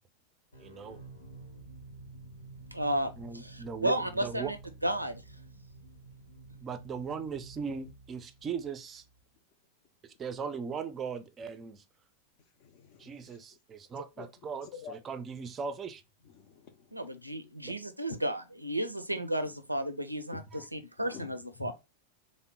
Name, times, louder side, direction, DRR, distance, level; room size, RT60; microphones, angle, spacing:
sound 1, 0.5-9.2, right 2 dB, 80° left, 1.0 m, -51 dB
voice 1, 0.6-1.0 3.2-4.5 6.6-9.0 10.0-11.8 13.0-16.0 17.6-17.7 20.5-20.6, right 6 dB, 25° right, 0.4 m, -39 dB
voice 2, 2.7-4.6 4.8-5.2 16.9-21.7, right 1 dB, 85° right, 0.4 m, -33 dB
voice 3, 12.6-13.4 14.2-14.3 14.7-14.9 16.3-17.0 20.3-20.6 21.0-21.7, left 6 dB, 45° left, 0.5 m, -48 dB
3.6 x 2.0 x 3.6 m
figure-of-eight pair, 90°, 0 cm